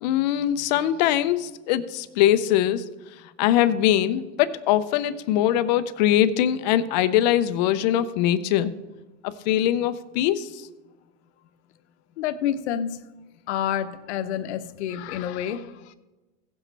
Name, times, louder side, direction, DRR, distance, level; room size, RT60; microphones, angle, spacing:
voice 1, 0.0-2.8 3.4-8.7 9.2-10.6, left 11 dB, 35° left, 12 dB, 0.5 m, -22 dB
voice 2, 12.2-13.0 13.5-15.9, left 10 dB, 55° left, 10 dB, 0.9 m, -28 dB
16.5 x 7.5 x 3.3 m, 1.1 s
supercardioid pair, 145°, 40 cm